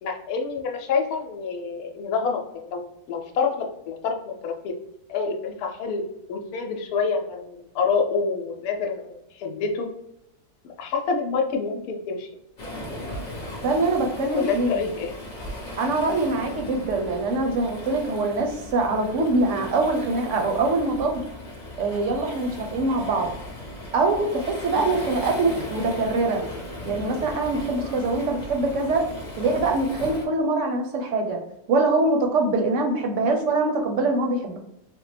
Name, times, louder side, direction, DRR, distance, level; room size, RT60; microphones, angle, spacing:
voice 1, 0.0-4.8 5.1-6.0 6.3-9.9 10.8-12.3 14.3-15.1 16.1-16.2 24.7-25.1, left 5 dB, 80° left, 2 dB, 1.1 m, -27 dB
Waves surf, 12.6-30.3, left 1 dB, 40° left, 0.9 m, -37 dB
voice 2, 13.6-14.9 15.8-21.2 21.8-23.3 23.9-26.4 26.8-29.1 29.4-31.4 31.7-34.6, right 2 dB, 60° right, 3 dB, 0.9 m, -23 dB
3.5 x 2.1 x 3.2 m, 0.83 s
omnidirectional pair, 1.6 m